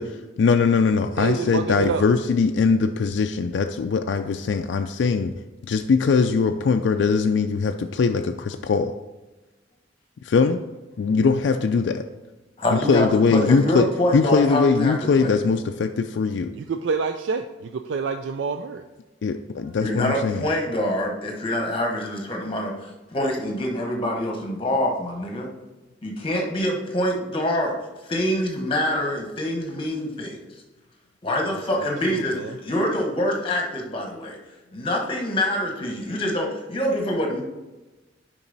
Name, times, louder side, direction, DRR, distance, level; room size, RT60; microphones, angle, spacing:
voice 1, 0.4-5.3 5.7-8.9 10.2-10.6 11.0-12.0 12.7-16.5 19.2-20.5, left 5 dB, 65° left, 5 dB, 0.3 m, -21 dB
voice 2, 1.2-2.0 16.5-18.9 31.5-32.6, right 5 dB, 70° right, 7 dB, 0.4 m, -28 dB
voice 3, 12.6-15.3 19.8-25.5 26.0-27.7 28.1-30.4 31.2-34.4 34.7-37.4, left 1 dB, 30° left, 1 dB, 1.2 m, -25 dB
7.0 x 5.3 x 4.0 m, 1.1 s
head